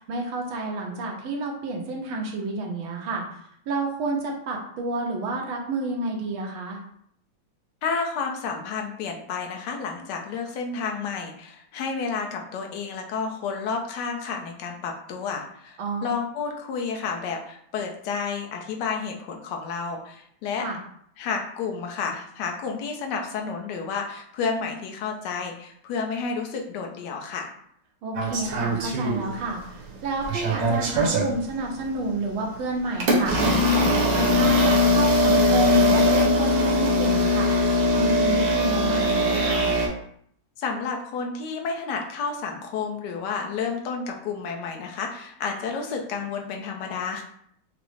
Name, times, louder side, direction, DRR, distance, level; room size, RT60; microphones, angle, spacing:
voice 1, 0.0-3.2 3.7-6.8 15.8-16.1 20.6-20.8 28.0-39.7, right 2 dB, 90° right, 0 dB, 1.6 m, -30 dB
voice 2, 7.8-20.7 21.2-27.5 40.6-47.2, left 5 dB, 70° left, 2 dB, 1.2 m, -31 dB
sound 1, 28.1-29.6 30.0-31.3 32.0-32.2 33.0-39.9, left 1 dB, 60° right, 1.1 m, -21 dB
6.0 x 2.0 x 3.2 m, 0.68 s
omnidirectional pair, 2.2 m